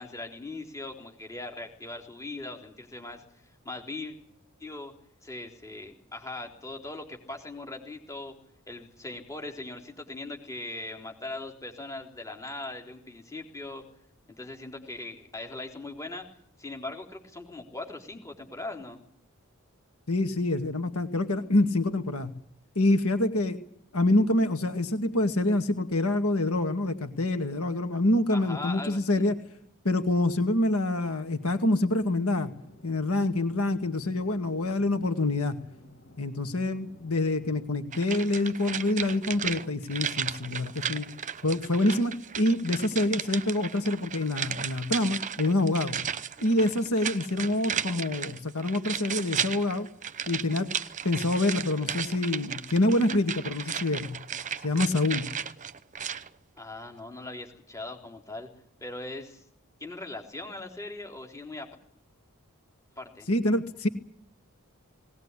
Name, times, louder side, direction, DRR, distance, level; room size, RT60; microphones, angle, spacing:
voice 1, 0.0-3.2 3.6-4.1 4.6-4.9 5.2-8.3 8.7-13.8 14.4-16.3 16.6-19.0 28.3-29.3 56.6-58.5 58.8-59.4 59.8-61.7 63.0-63.3, left 2 dB, 15° left, 3 dB, 3.8 m, -40 dB
voice 2, 20.1-22.4 22.8-23.6 23.9-29.4 29.8-32.5 32.8-35.6 36.2-41.1 41.4-46.0 46.4-49.9 50.3-50.7 51.0-54.2 54.6-55.3 63.3-63.9, left 2 dB, 85° left, 8 dB, 2.1 m, -26 dB
sound 1, 32.3-37.7, left 1 dB, 60° left, 3.2 m, -54 dB
sound 2, 37.9-56.3 56.6-56.7, right 8 dB, 35° right, 0.9 m, -35 dB
19.5 x 19.0 x 9.9 m, 0.68 s
head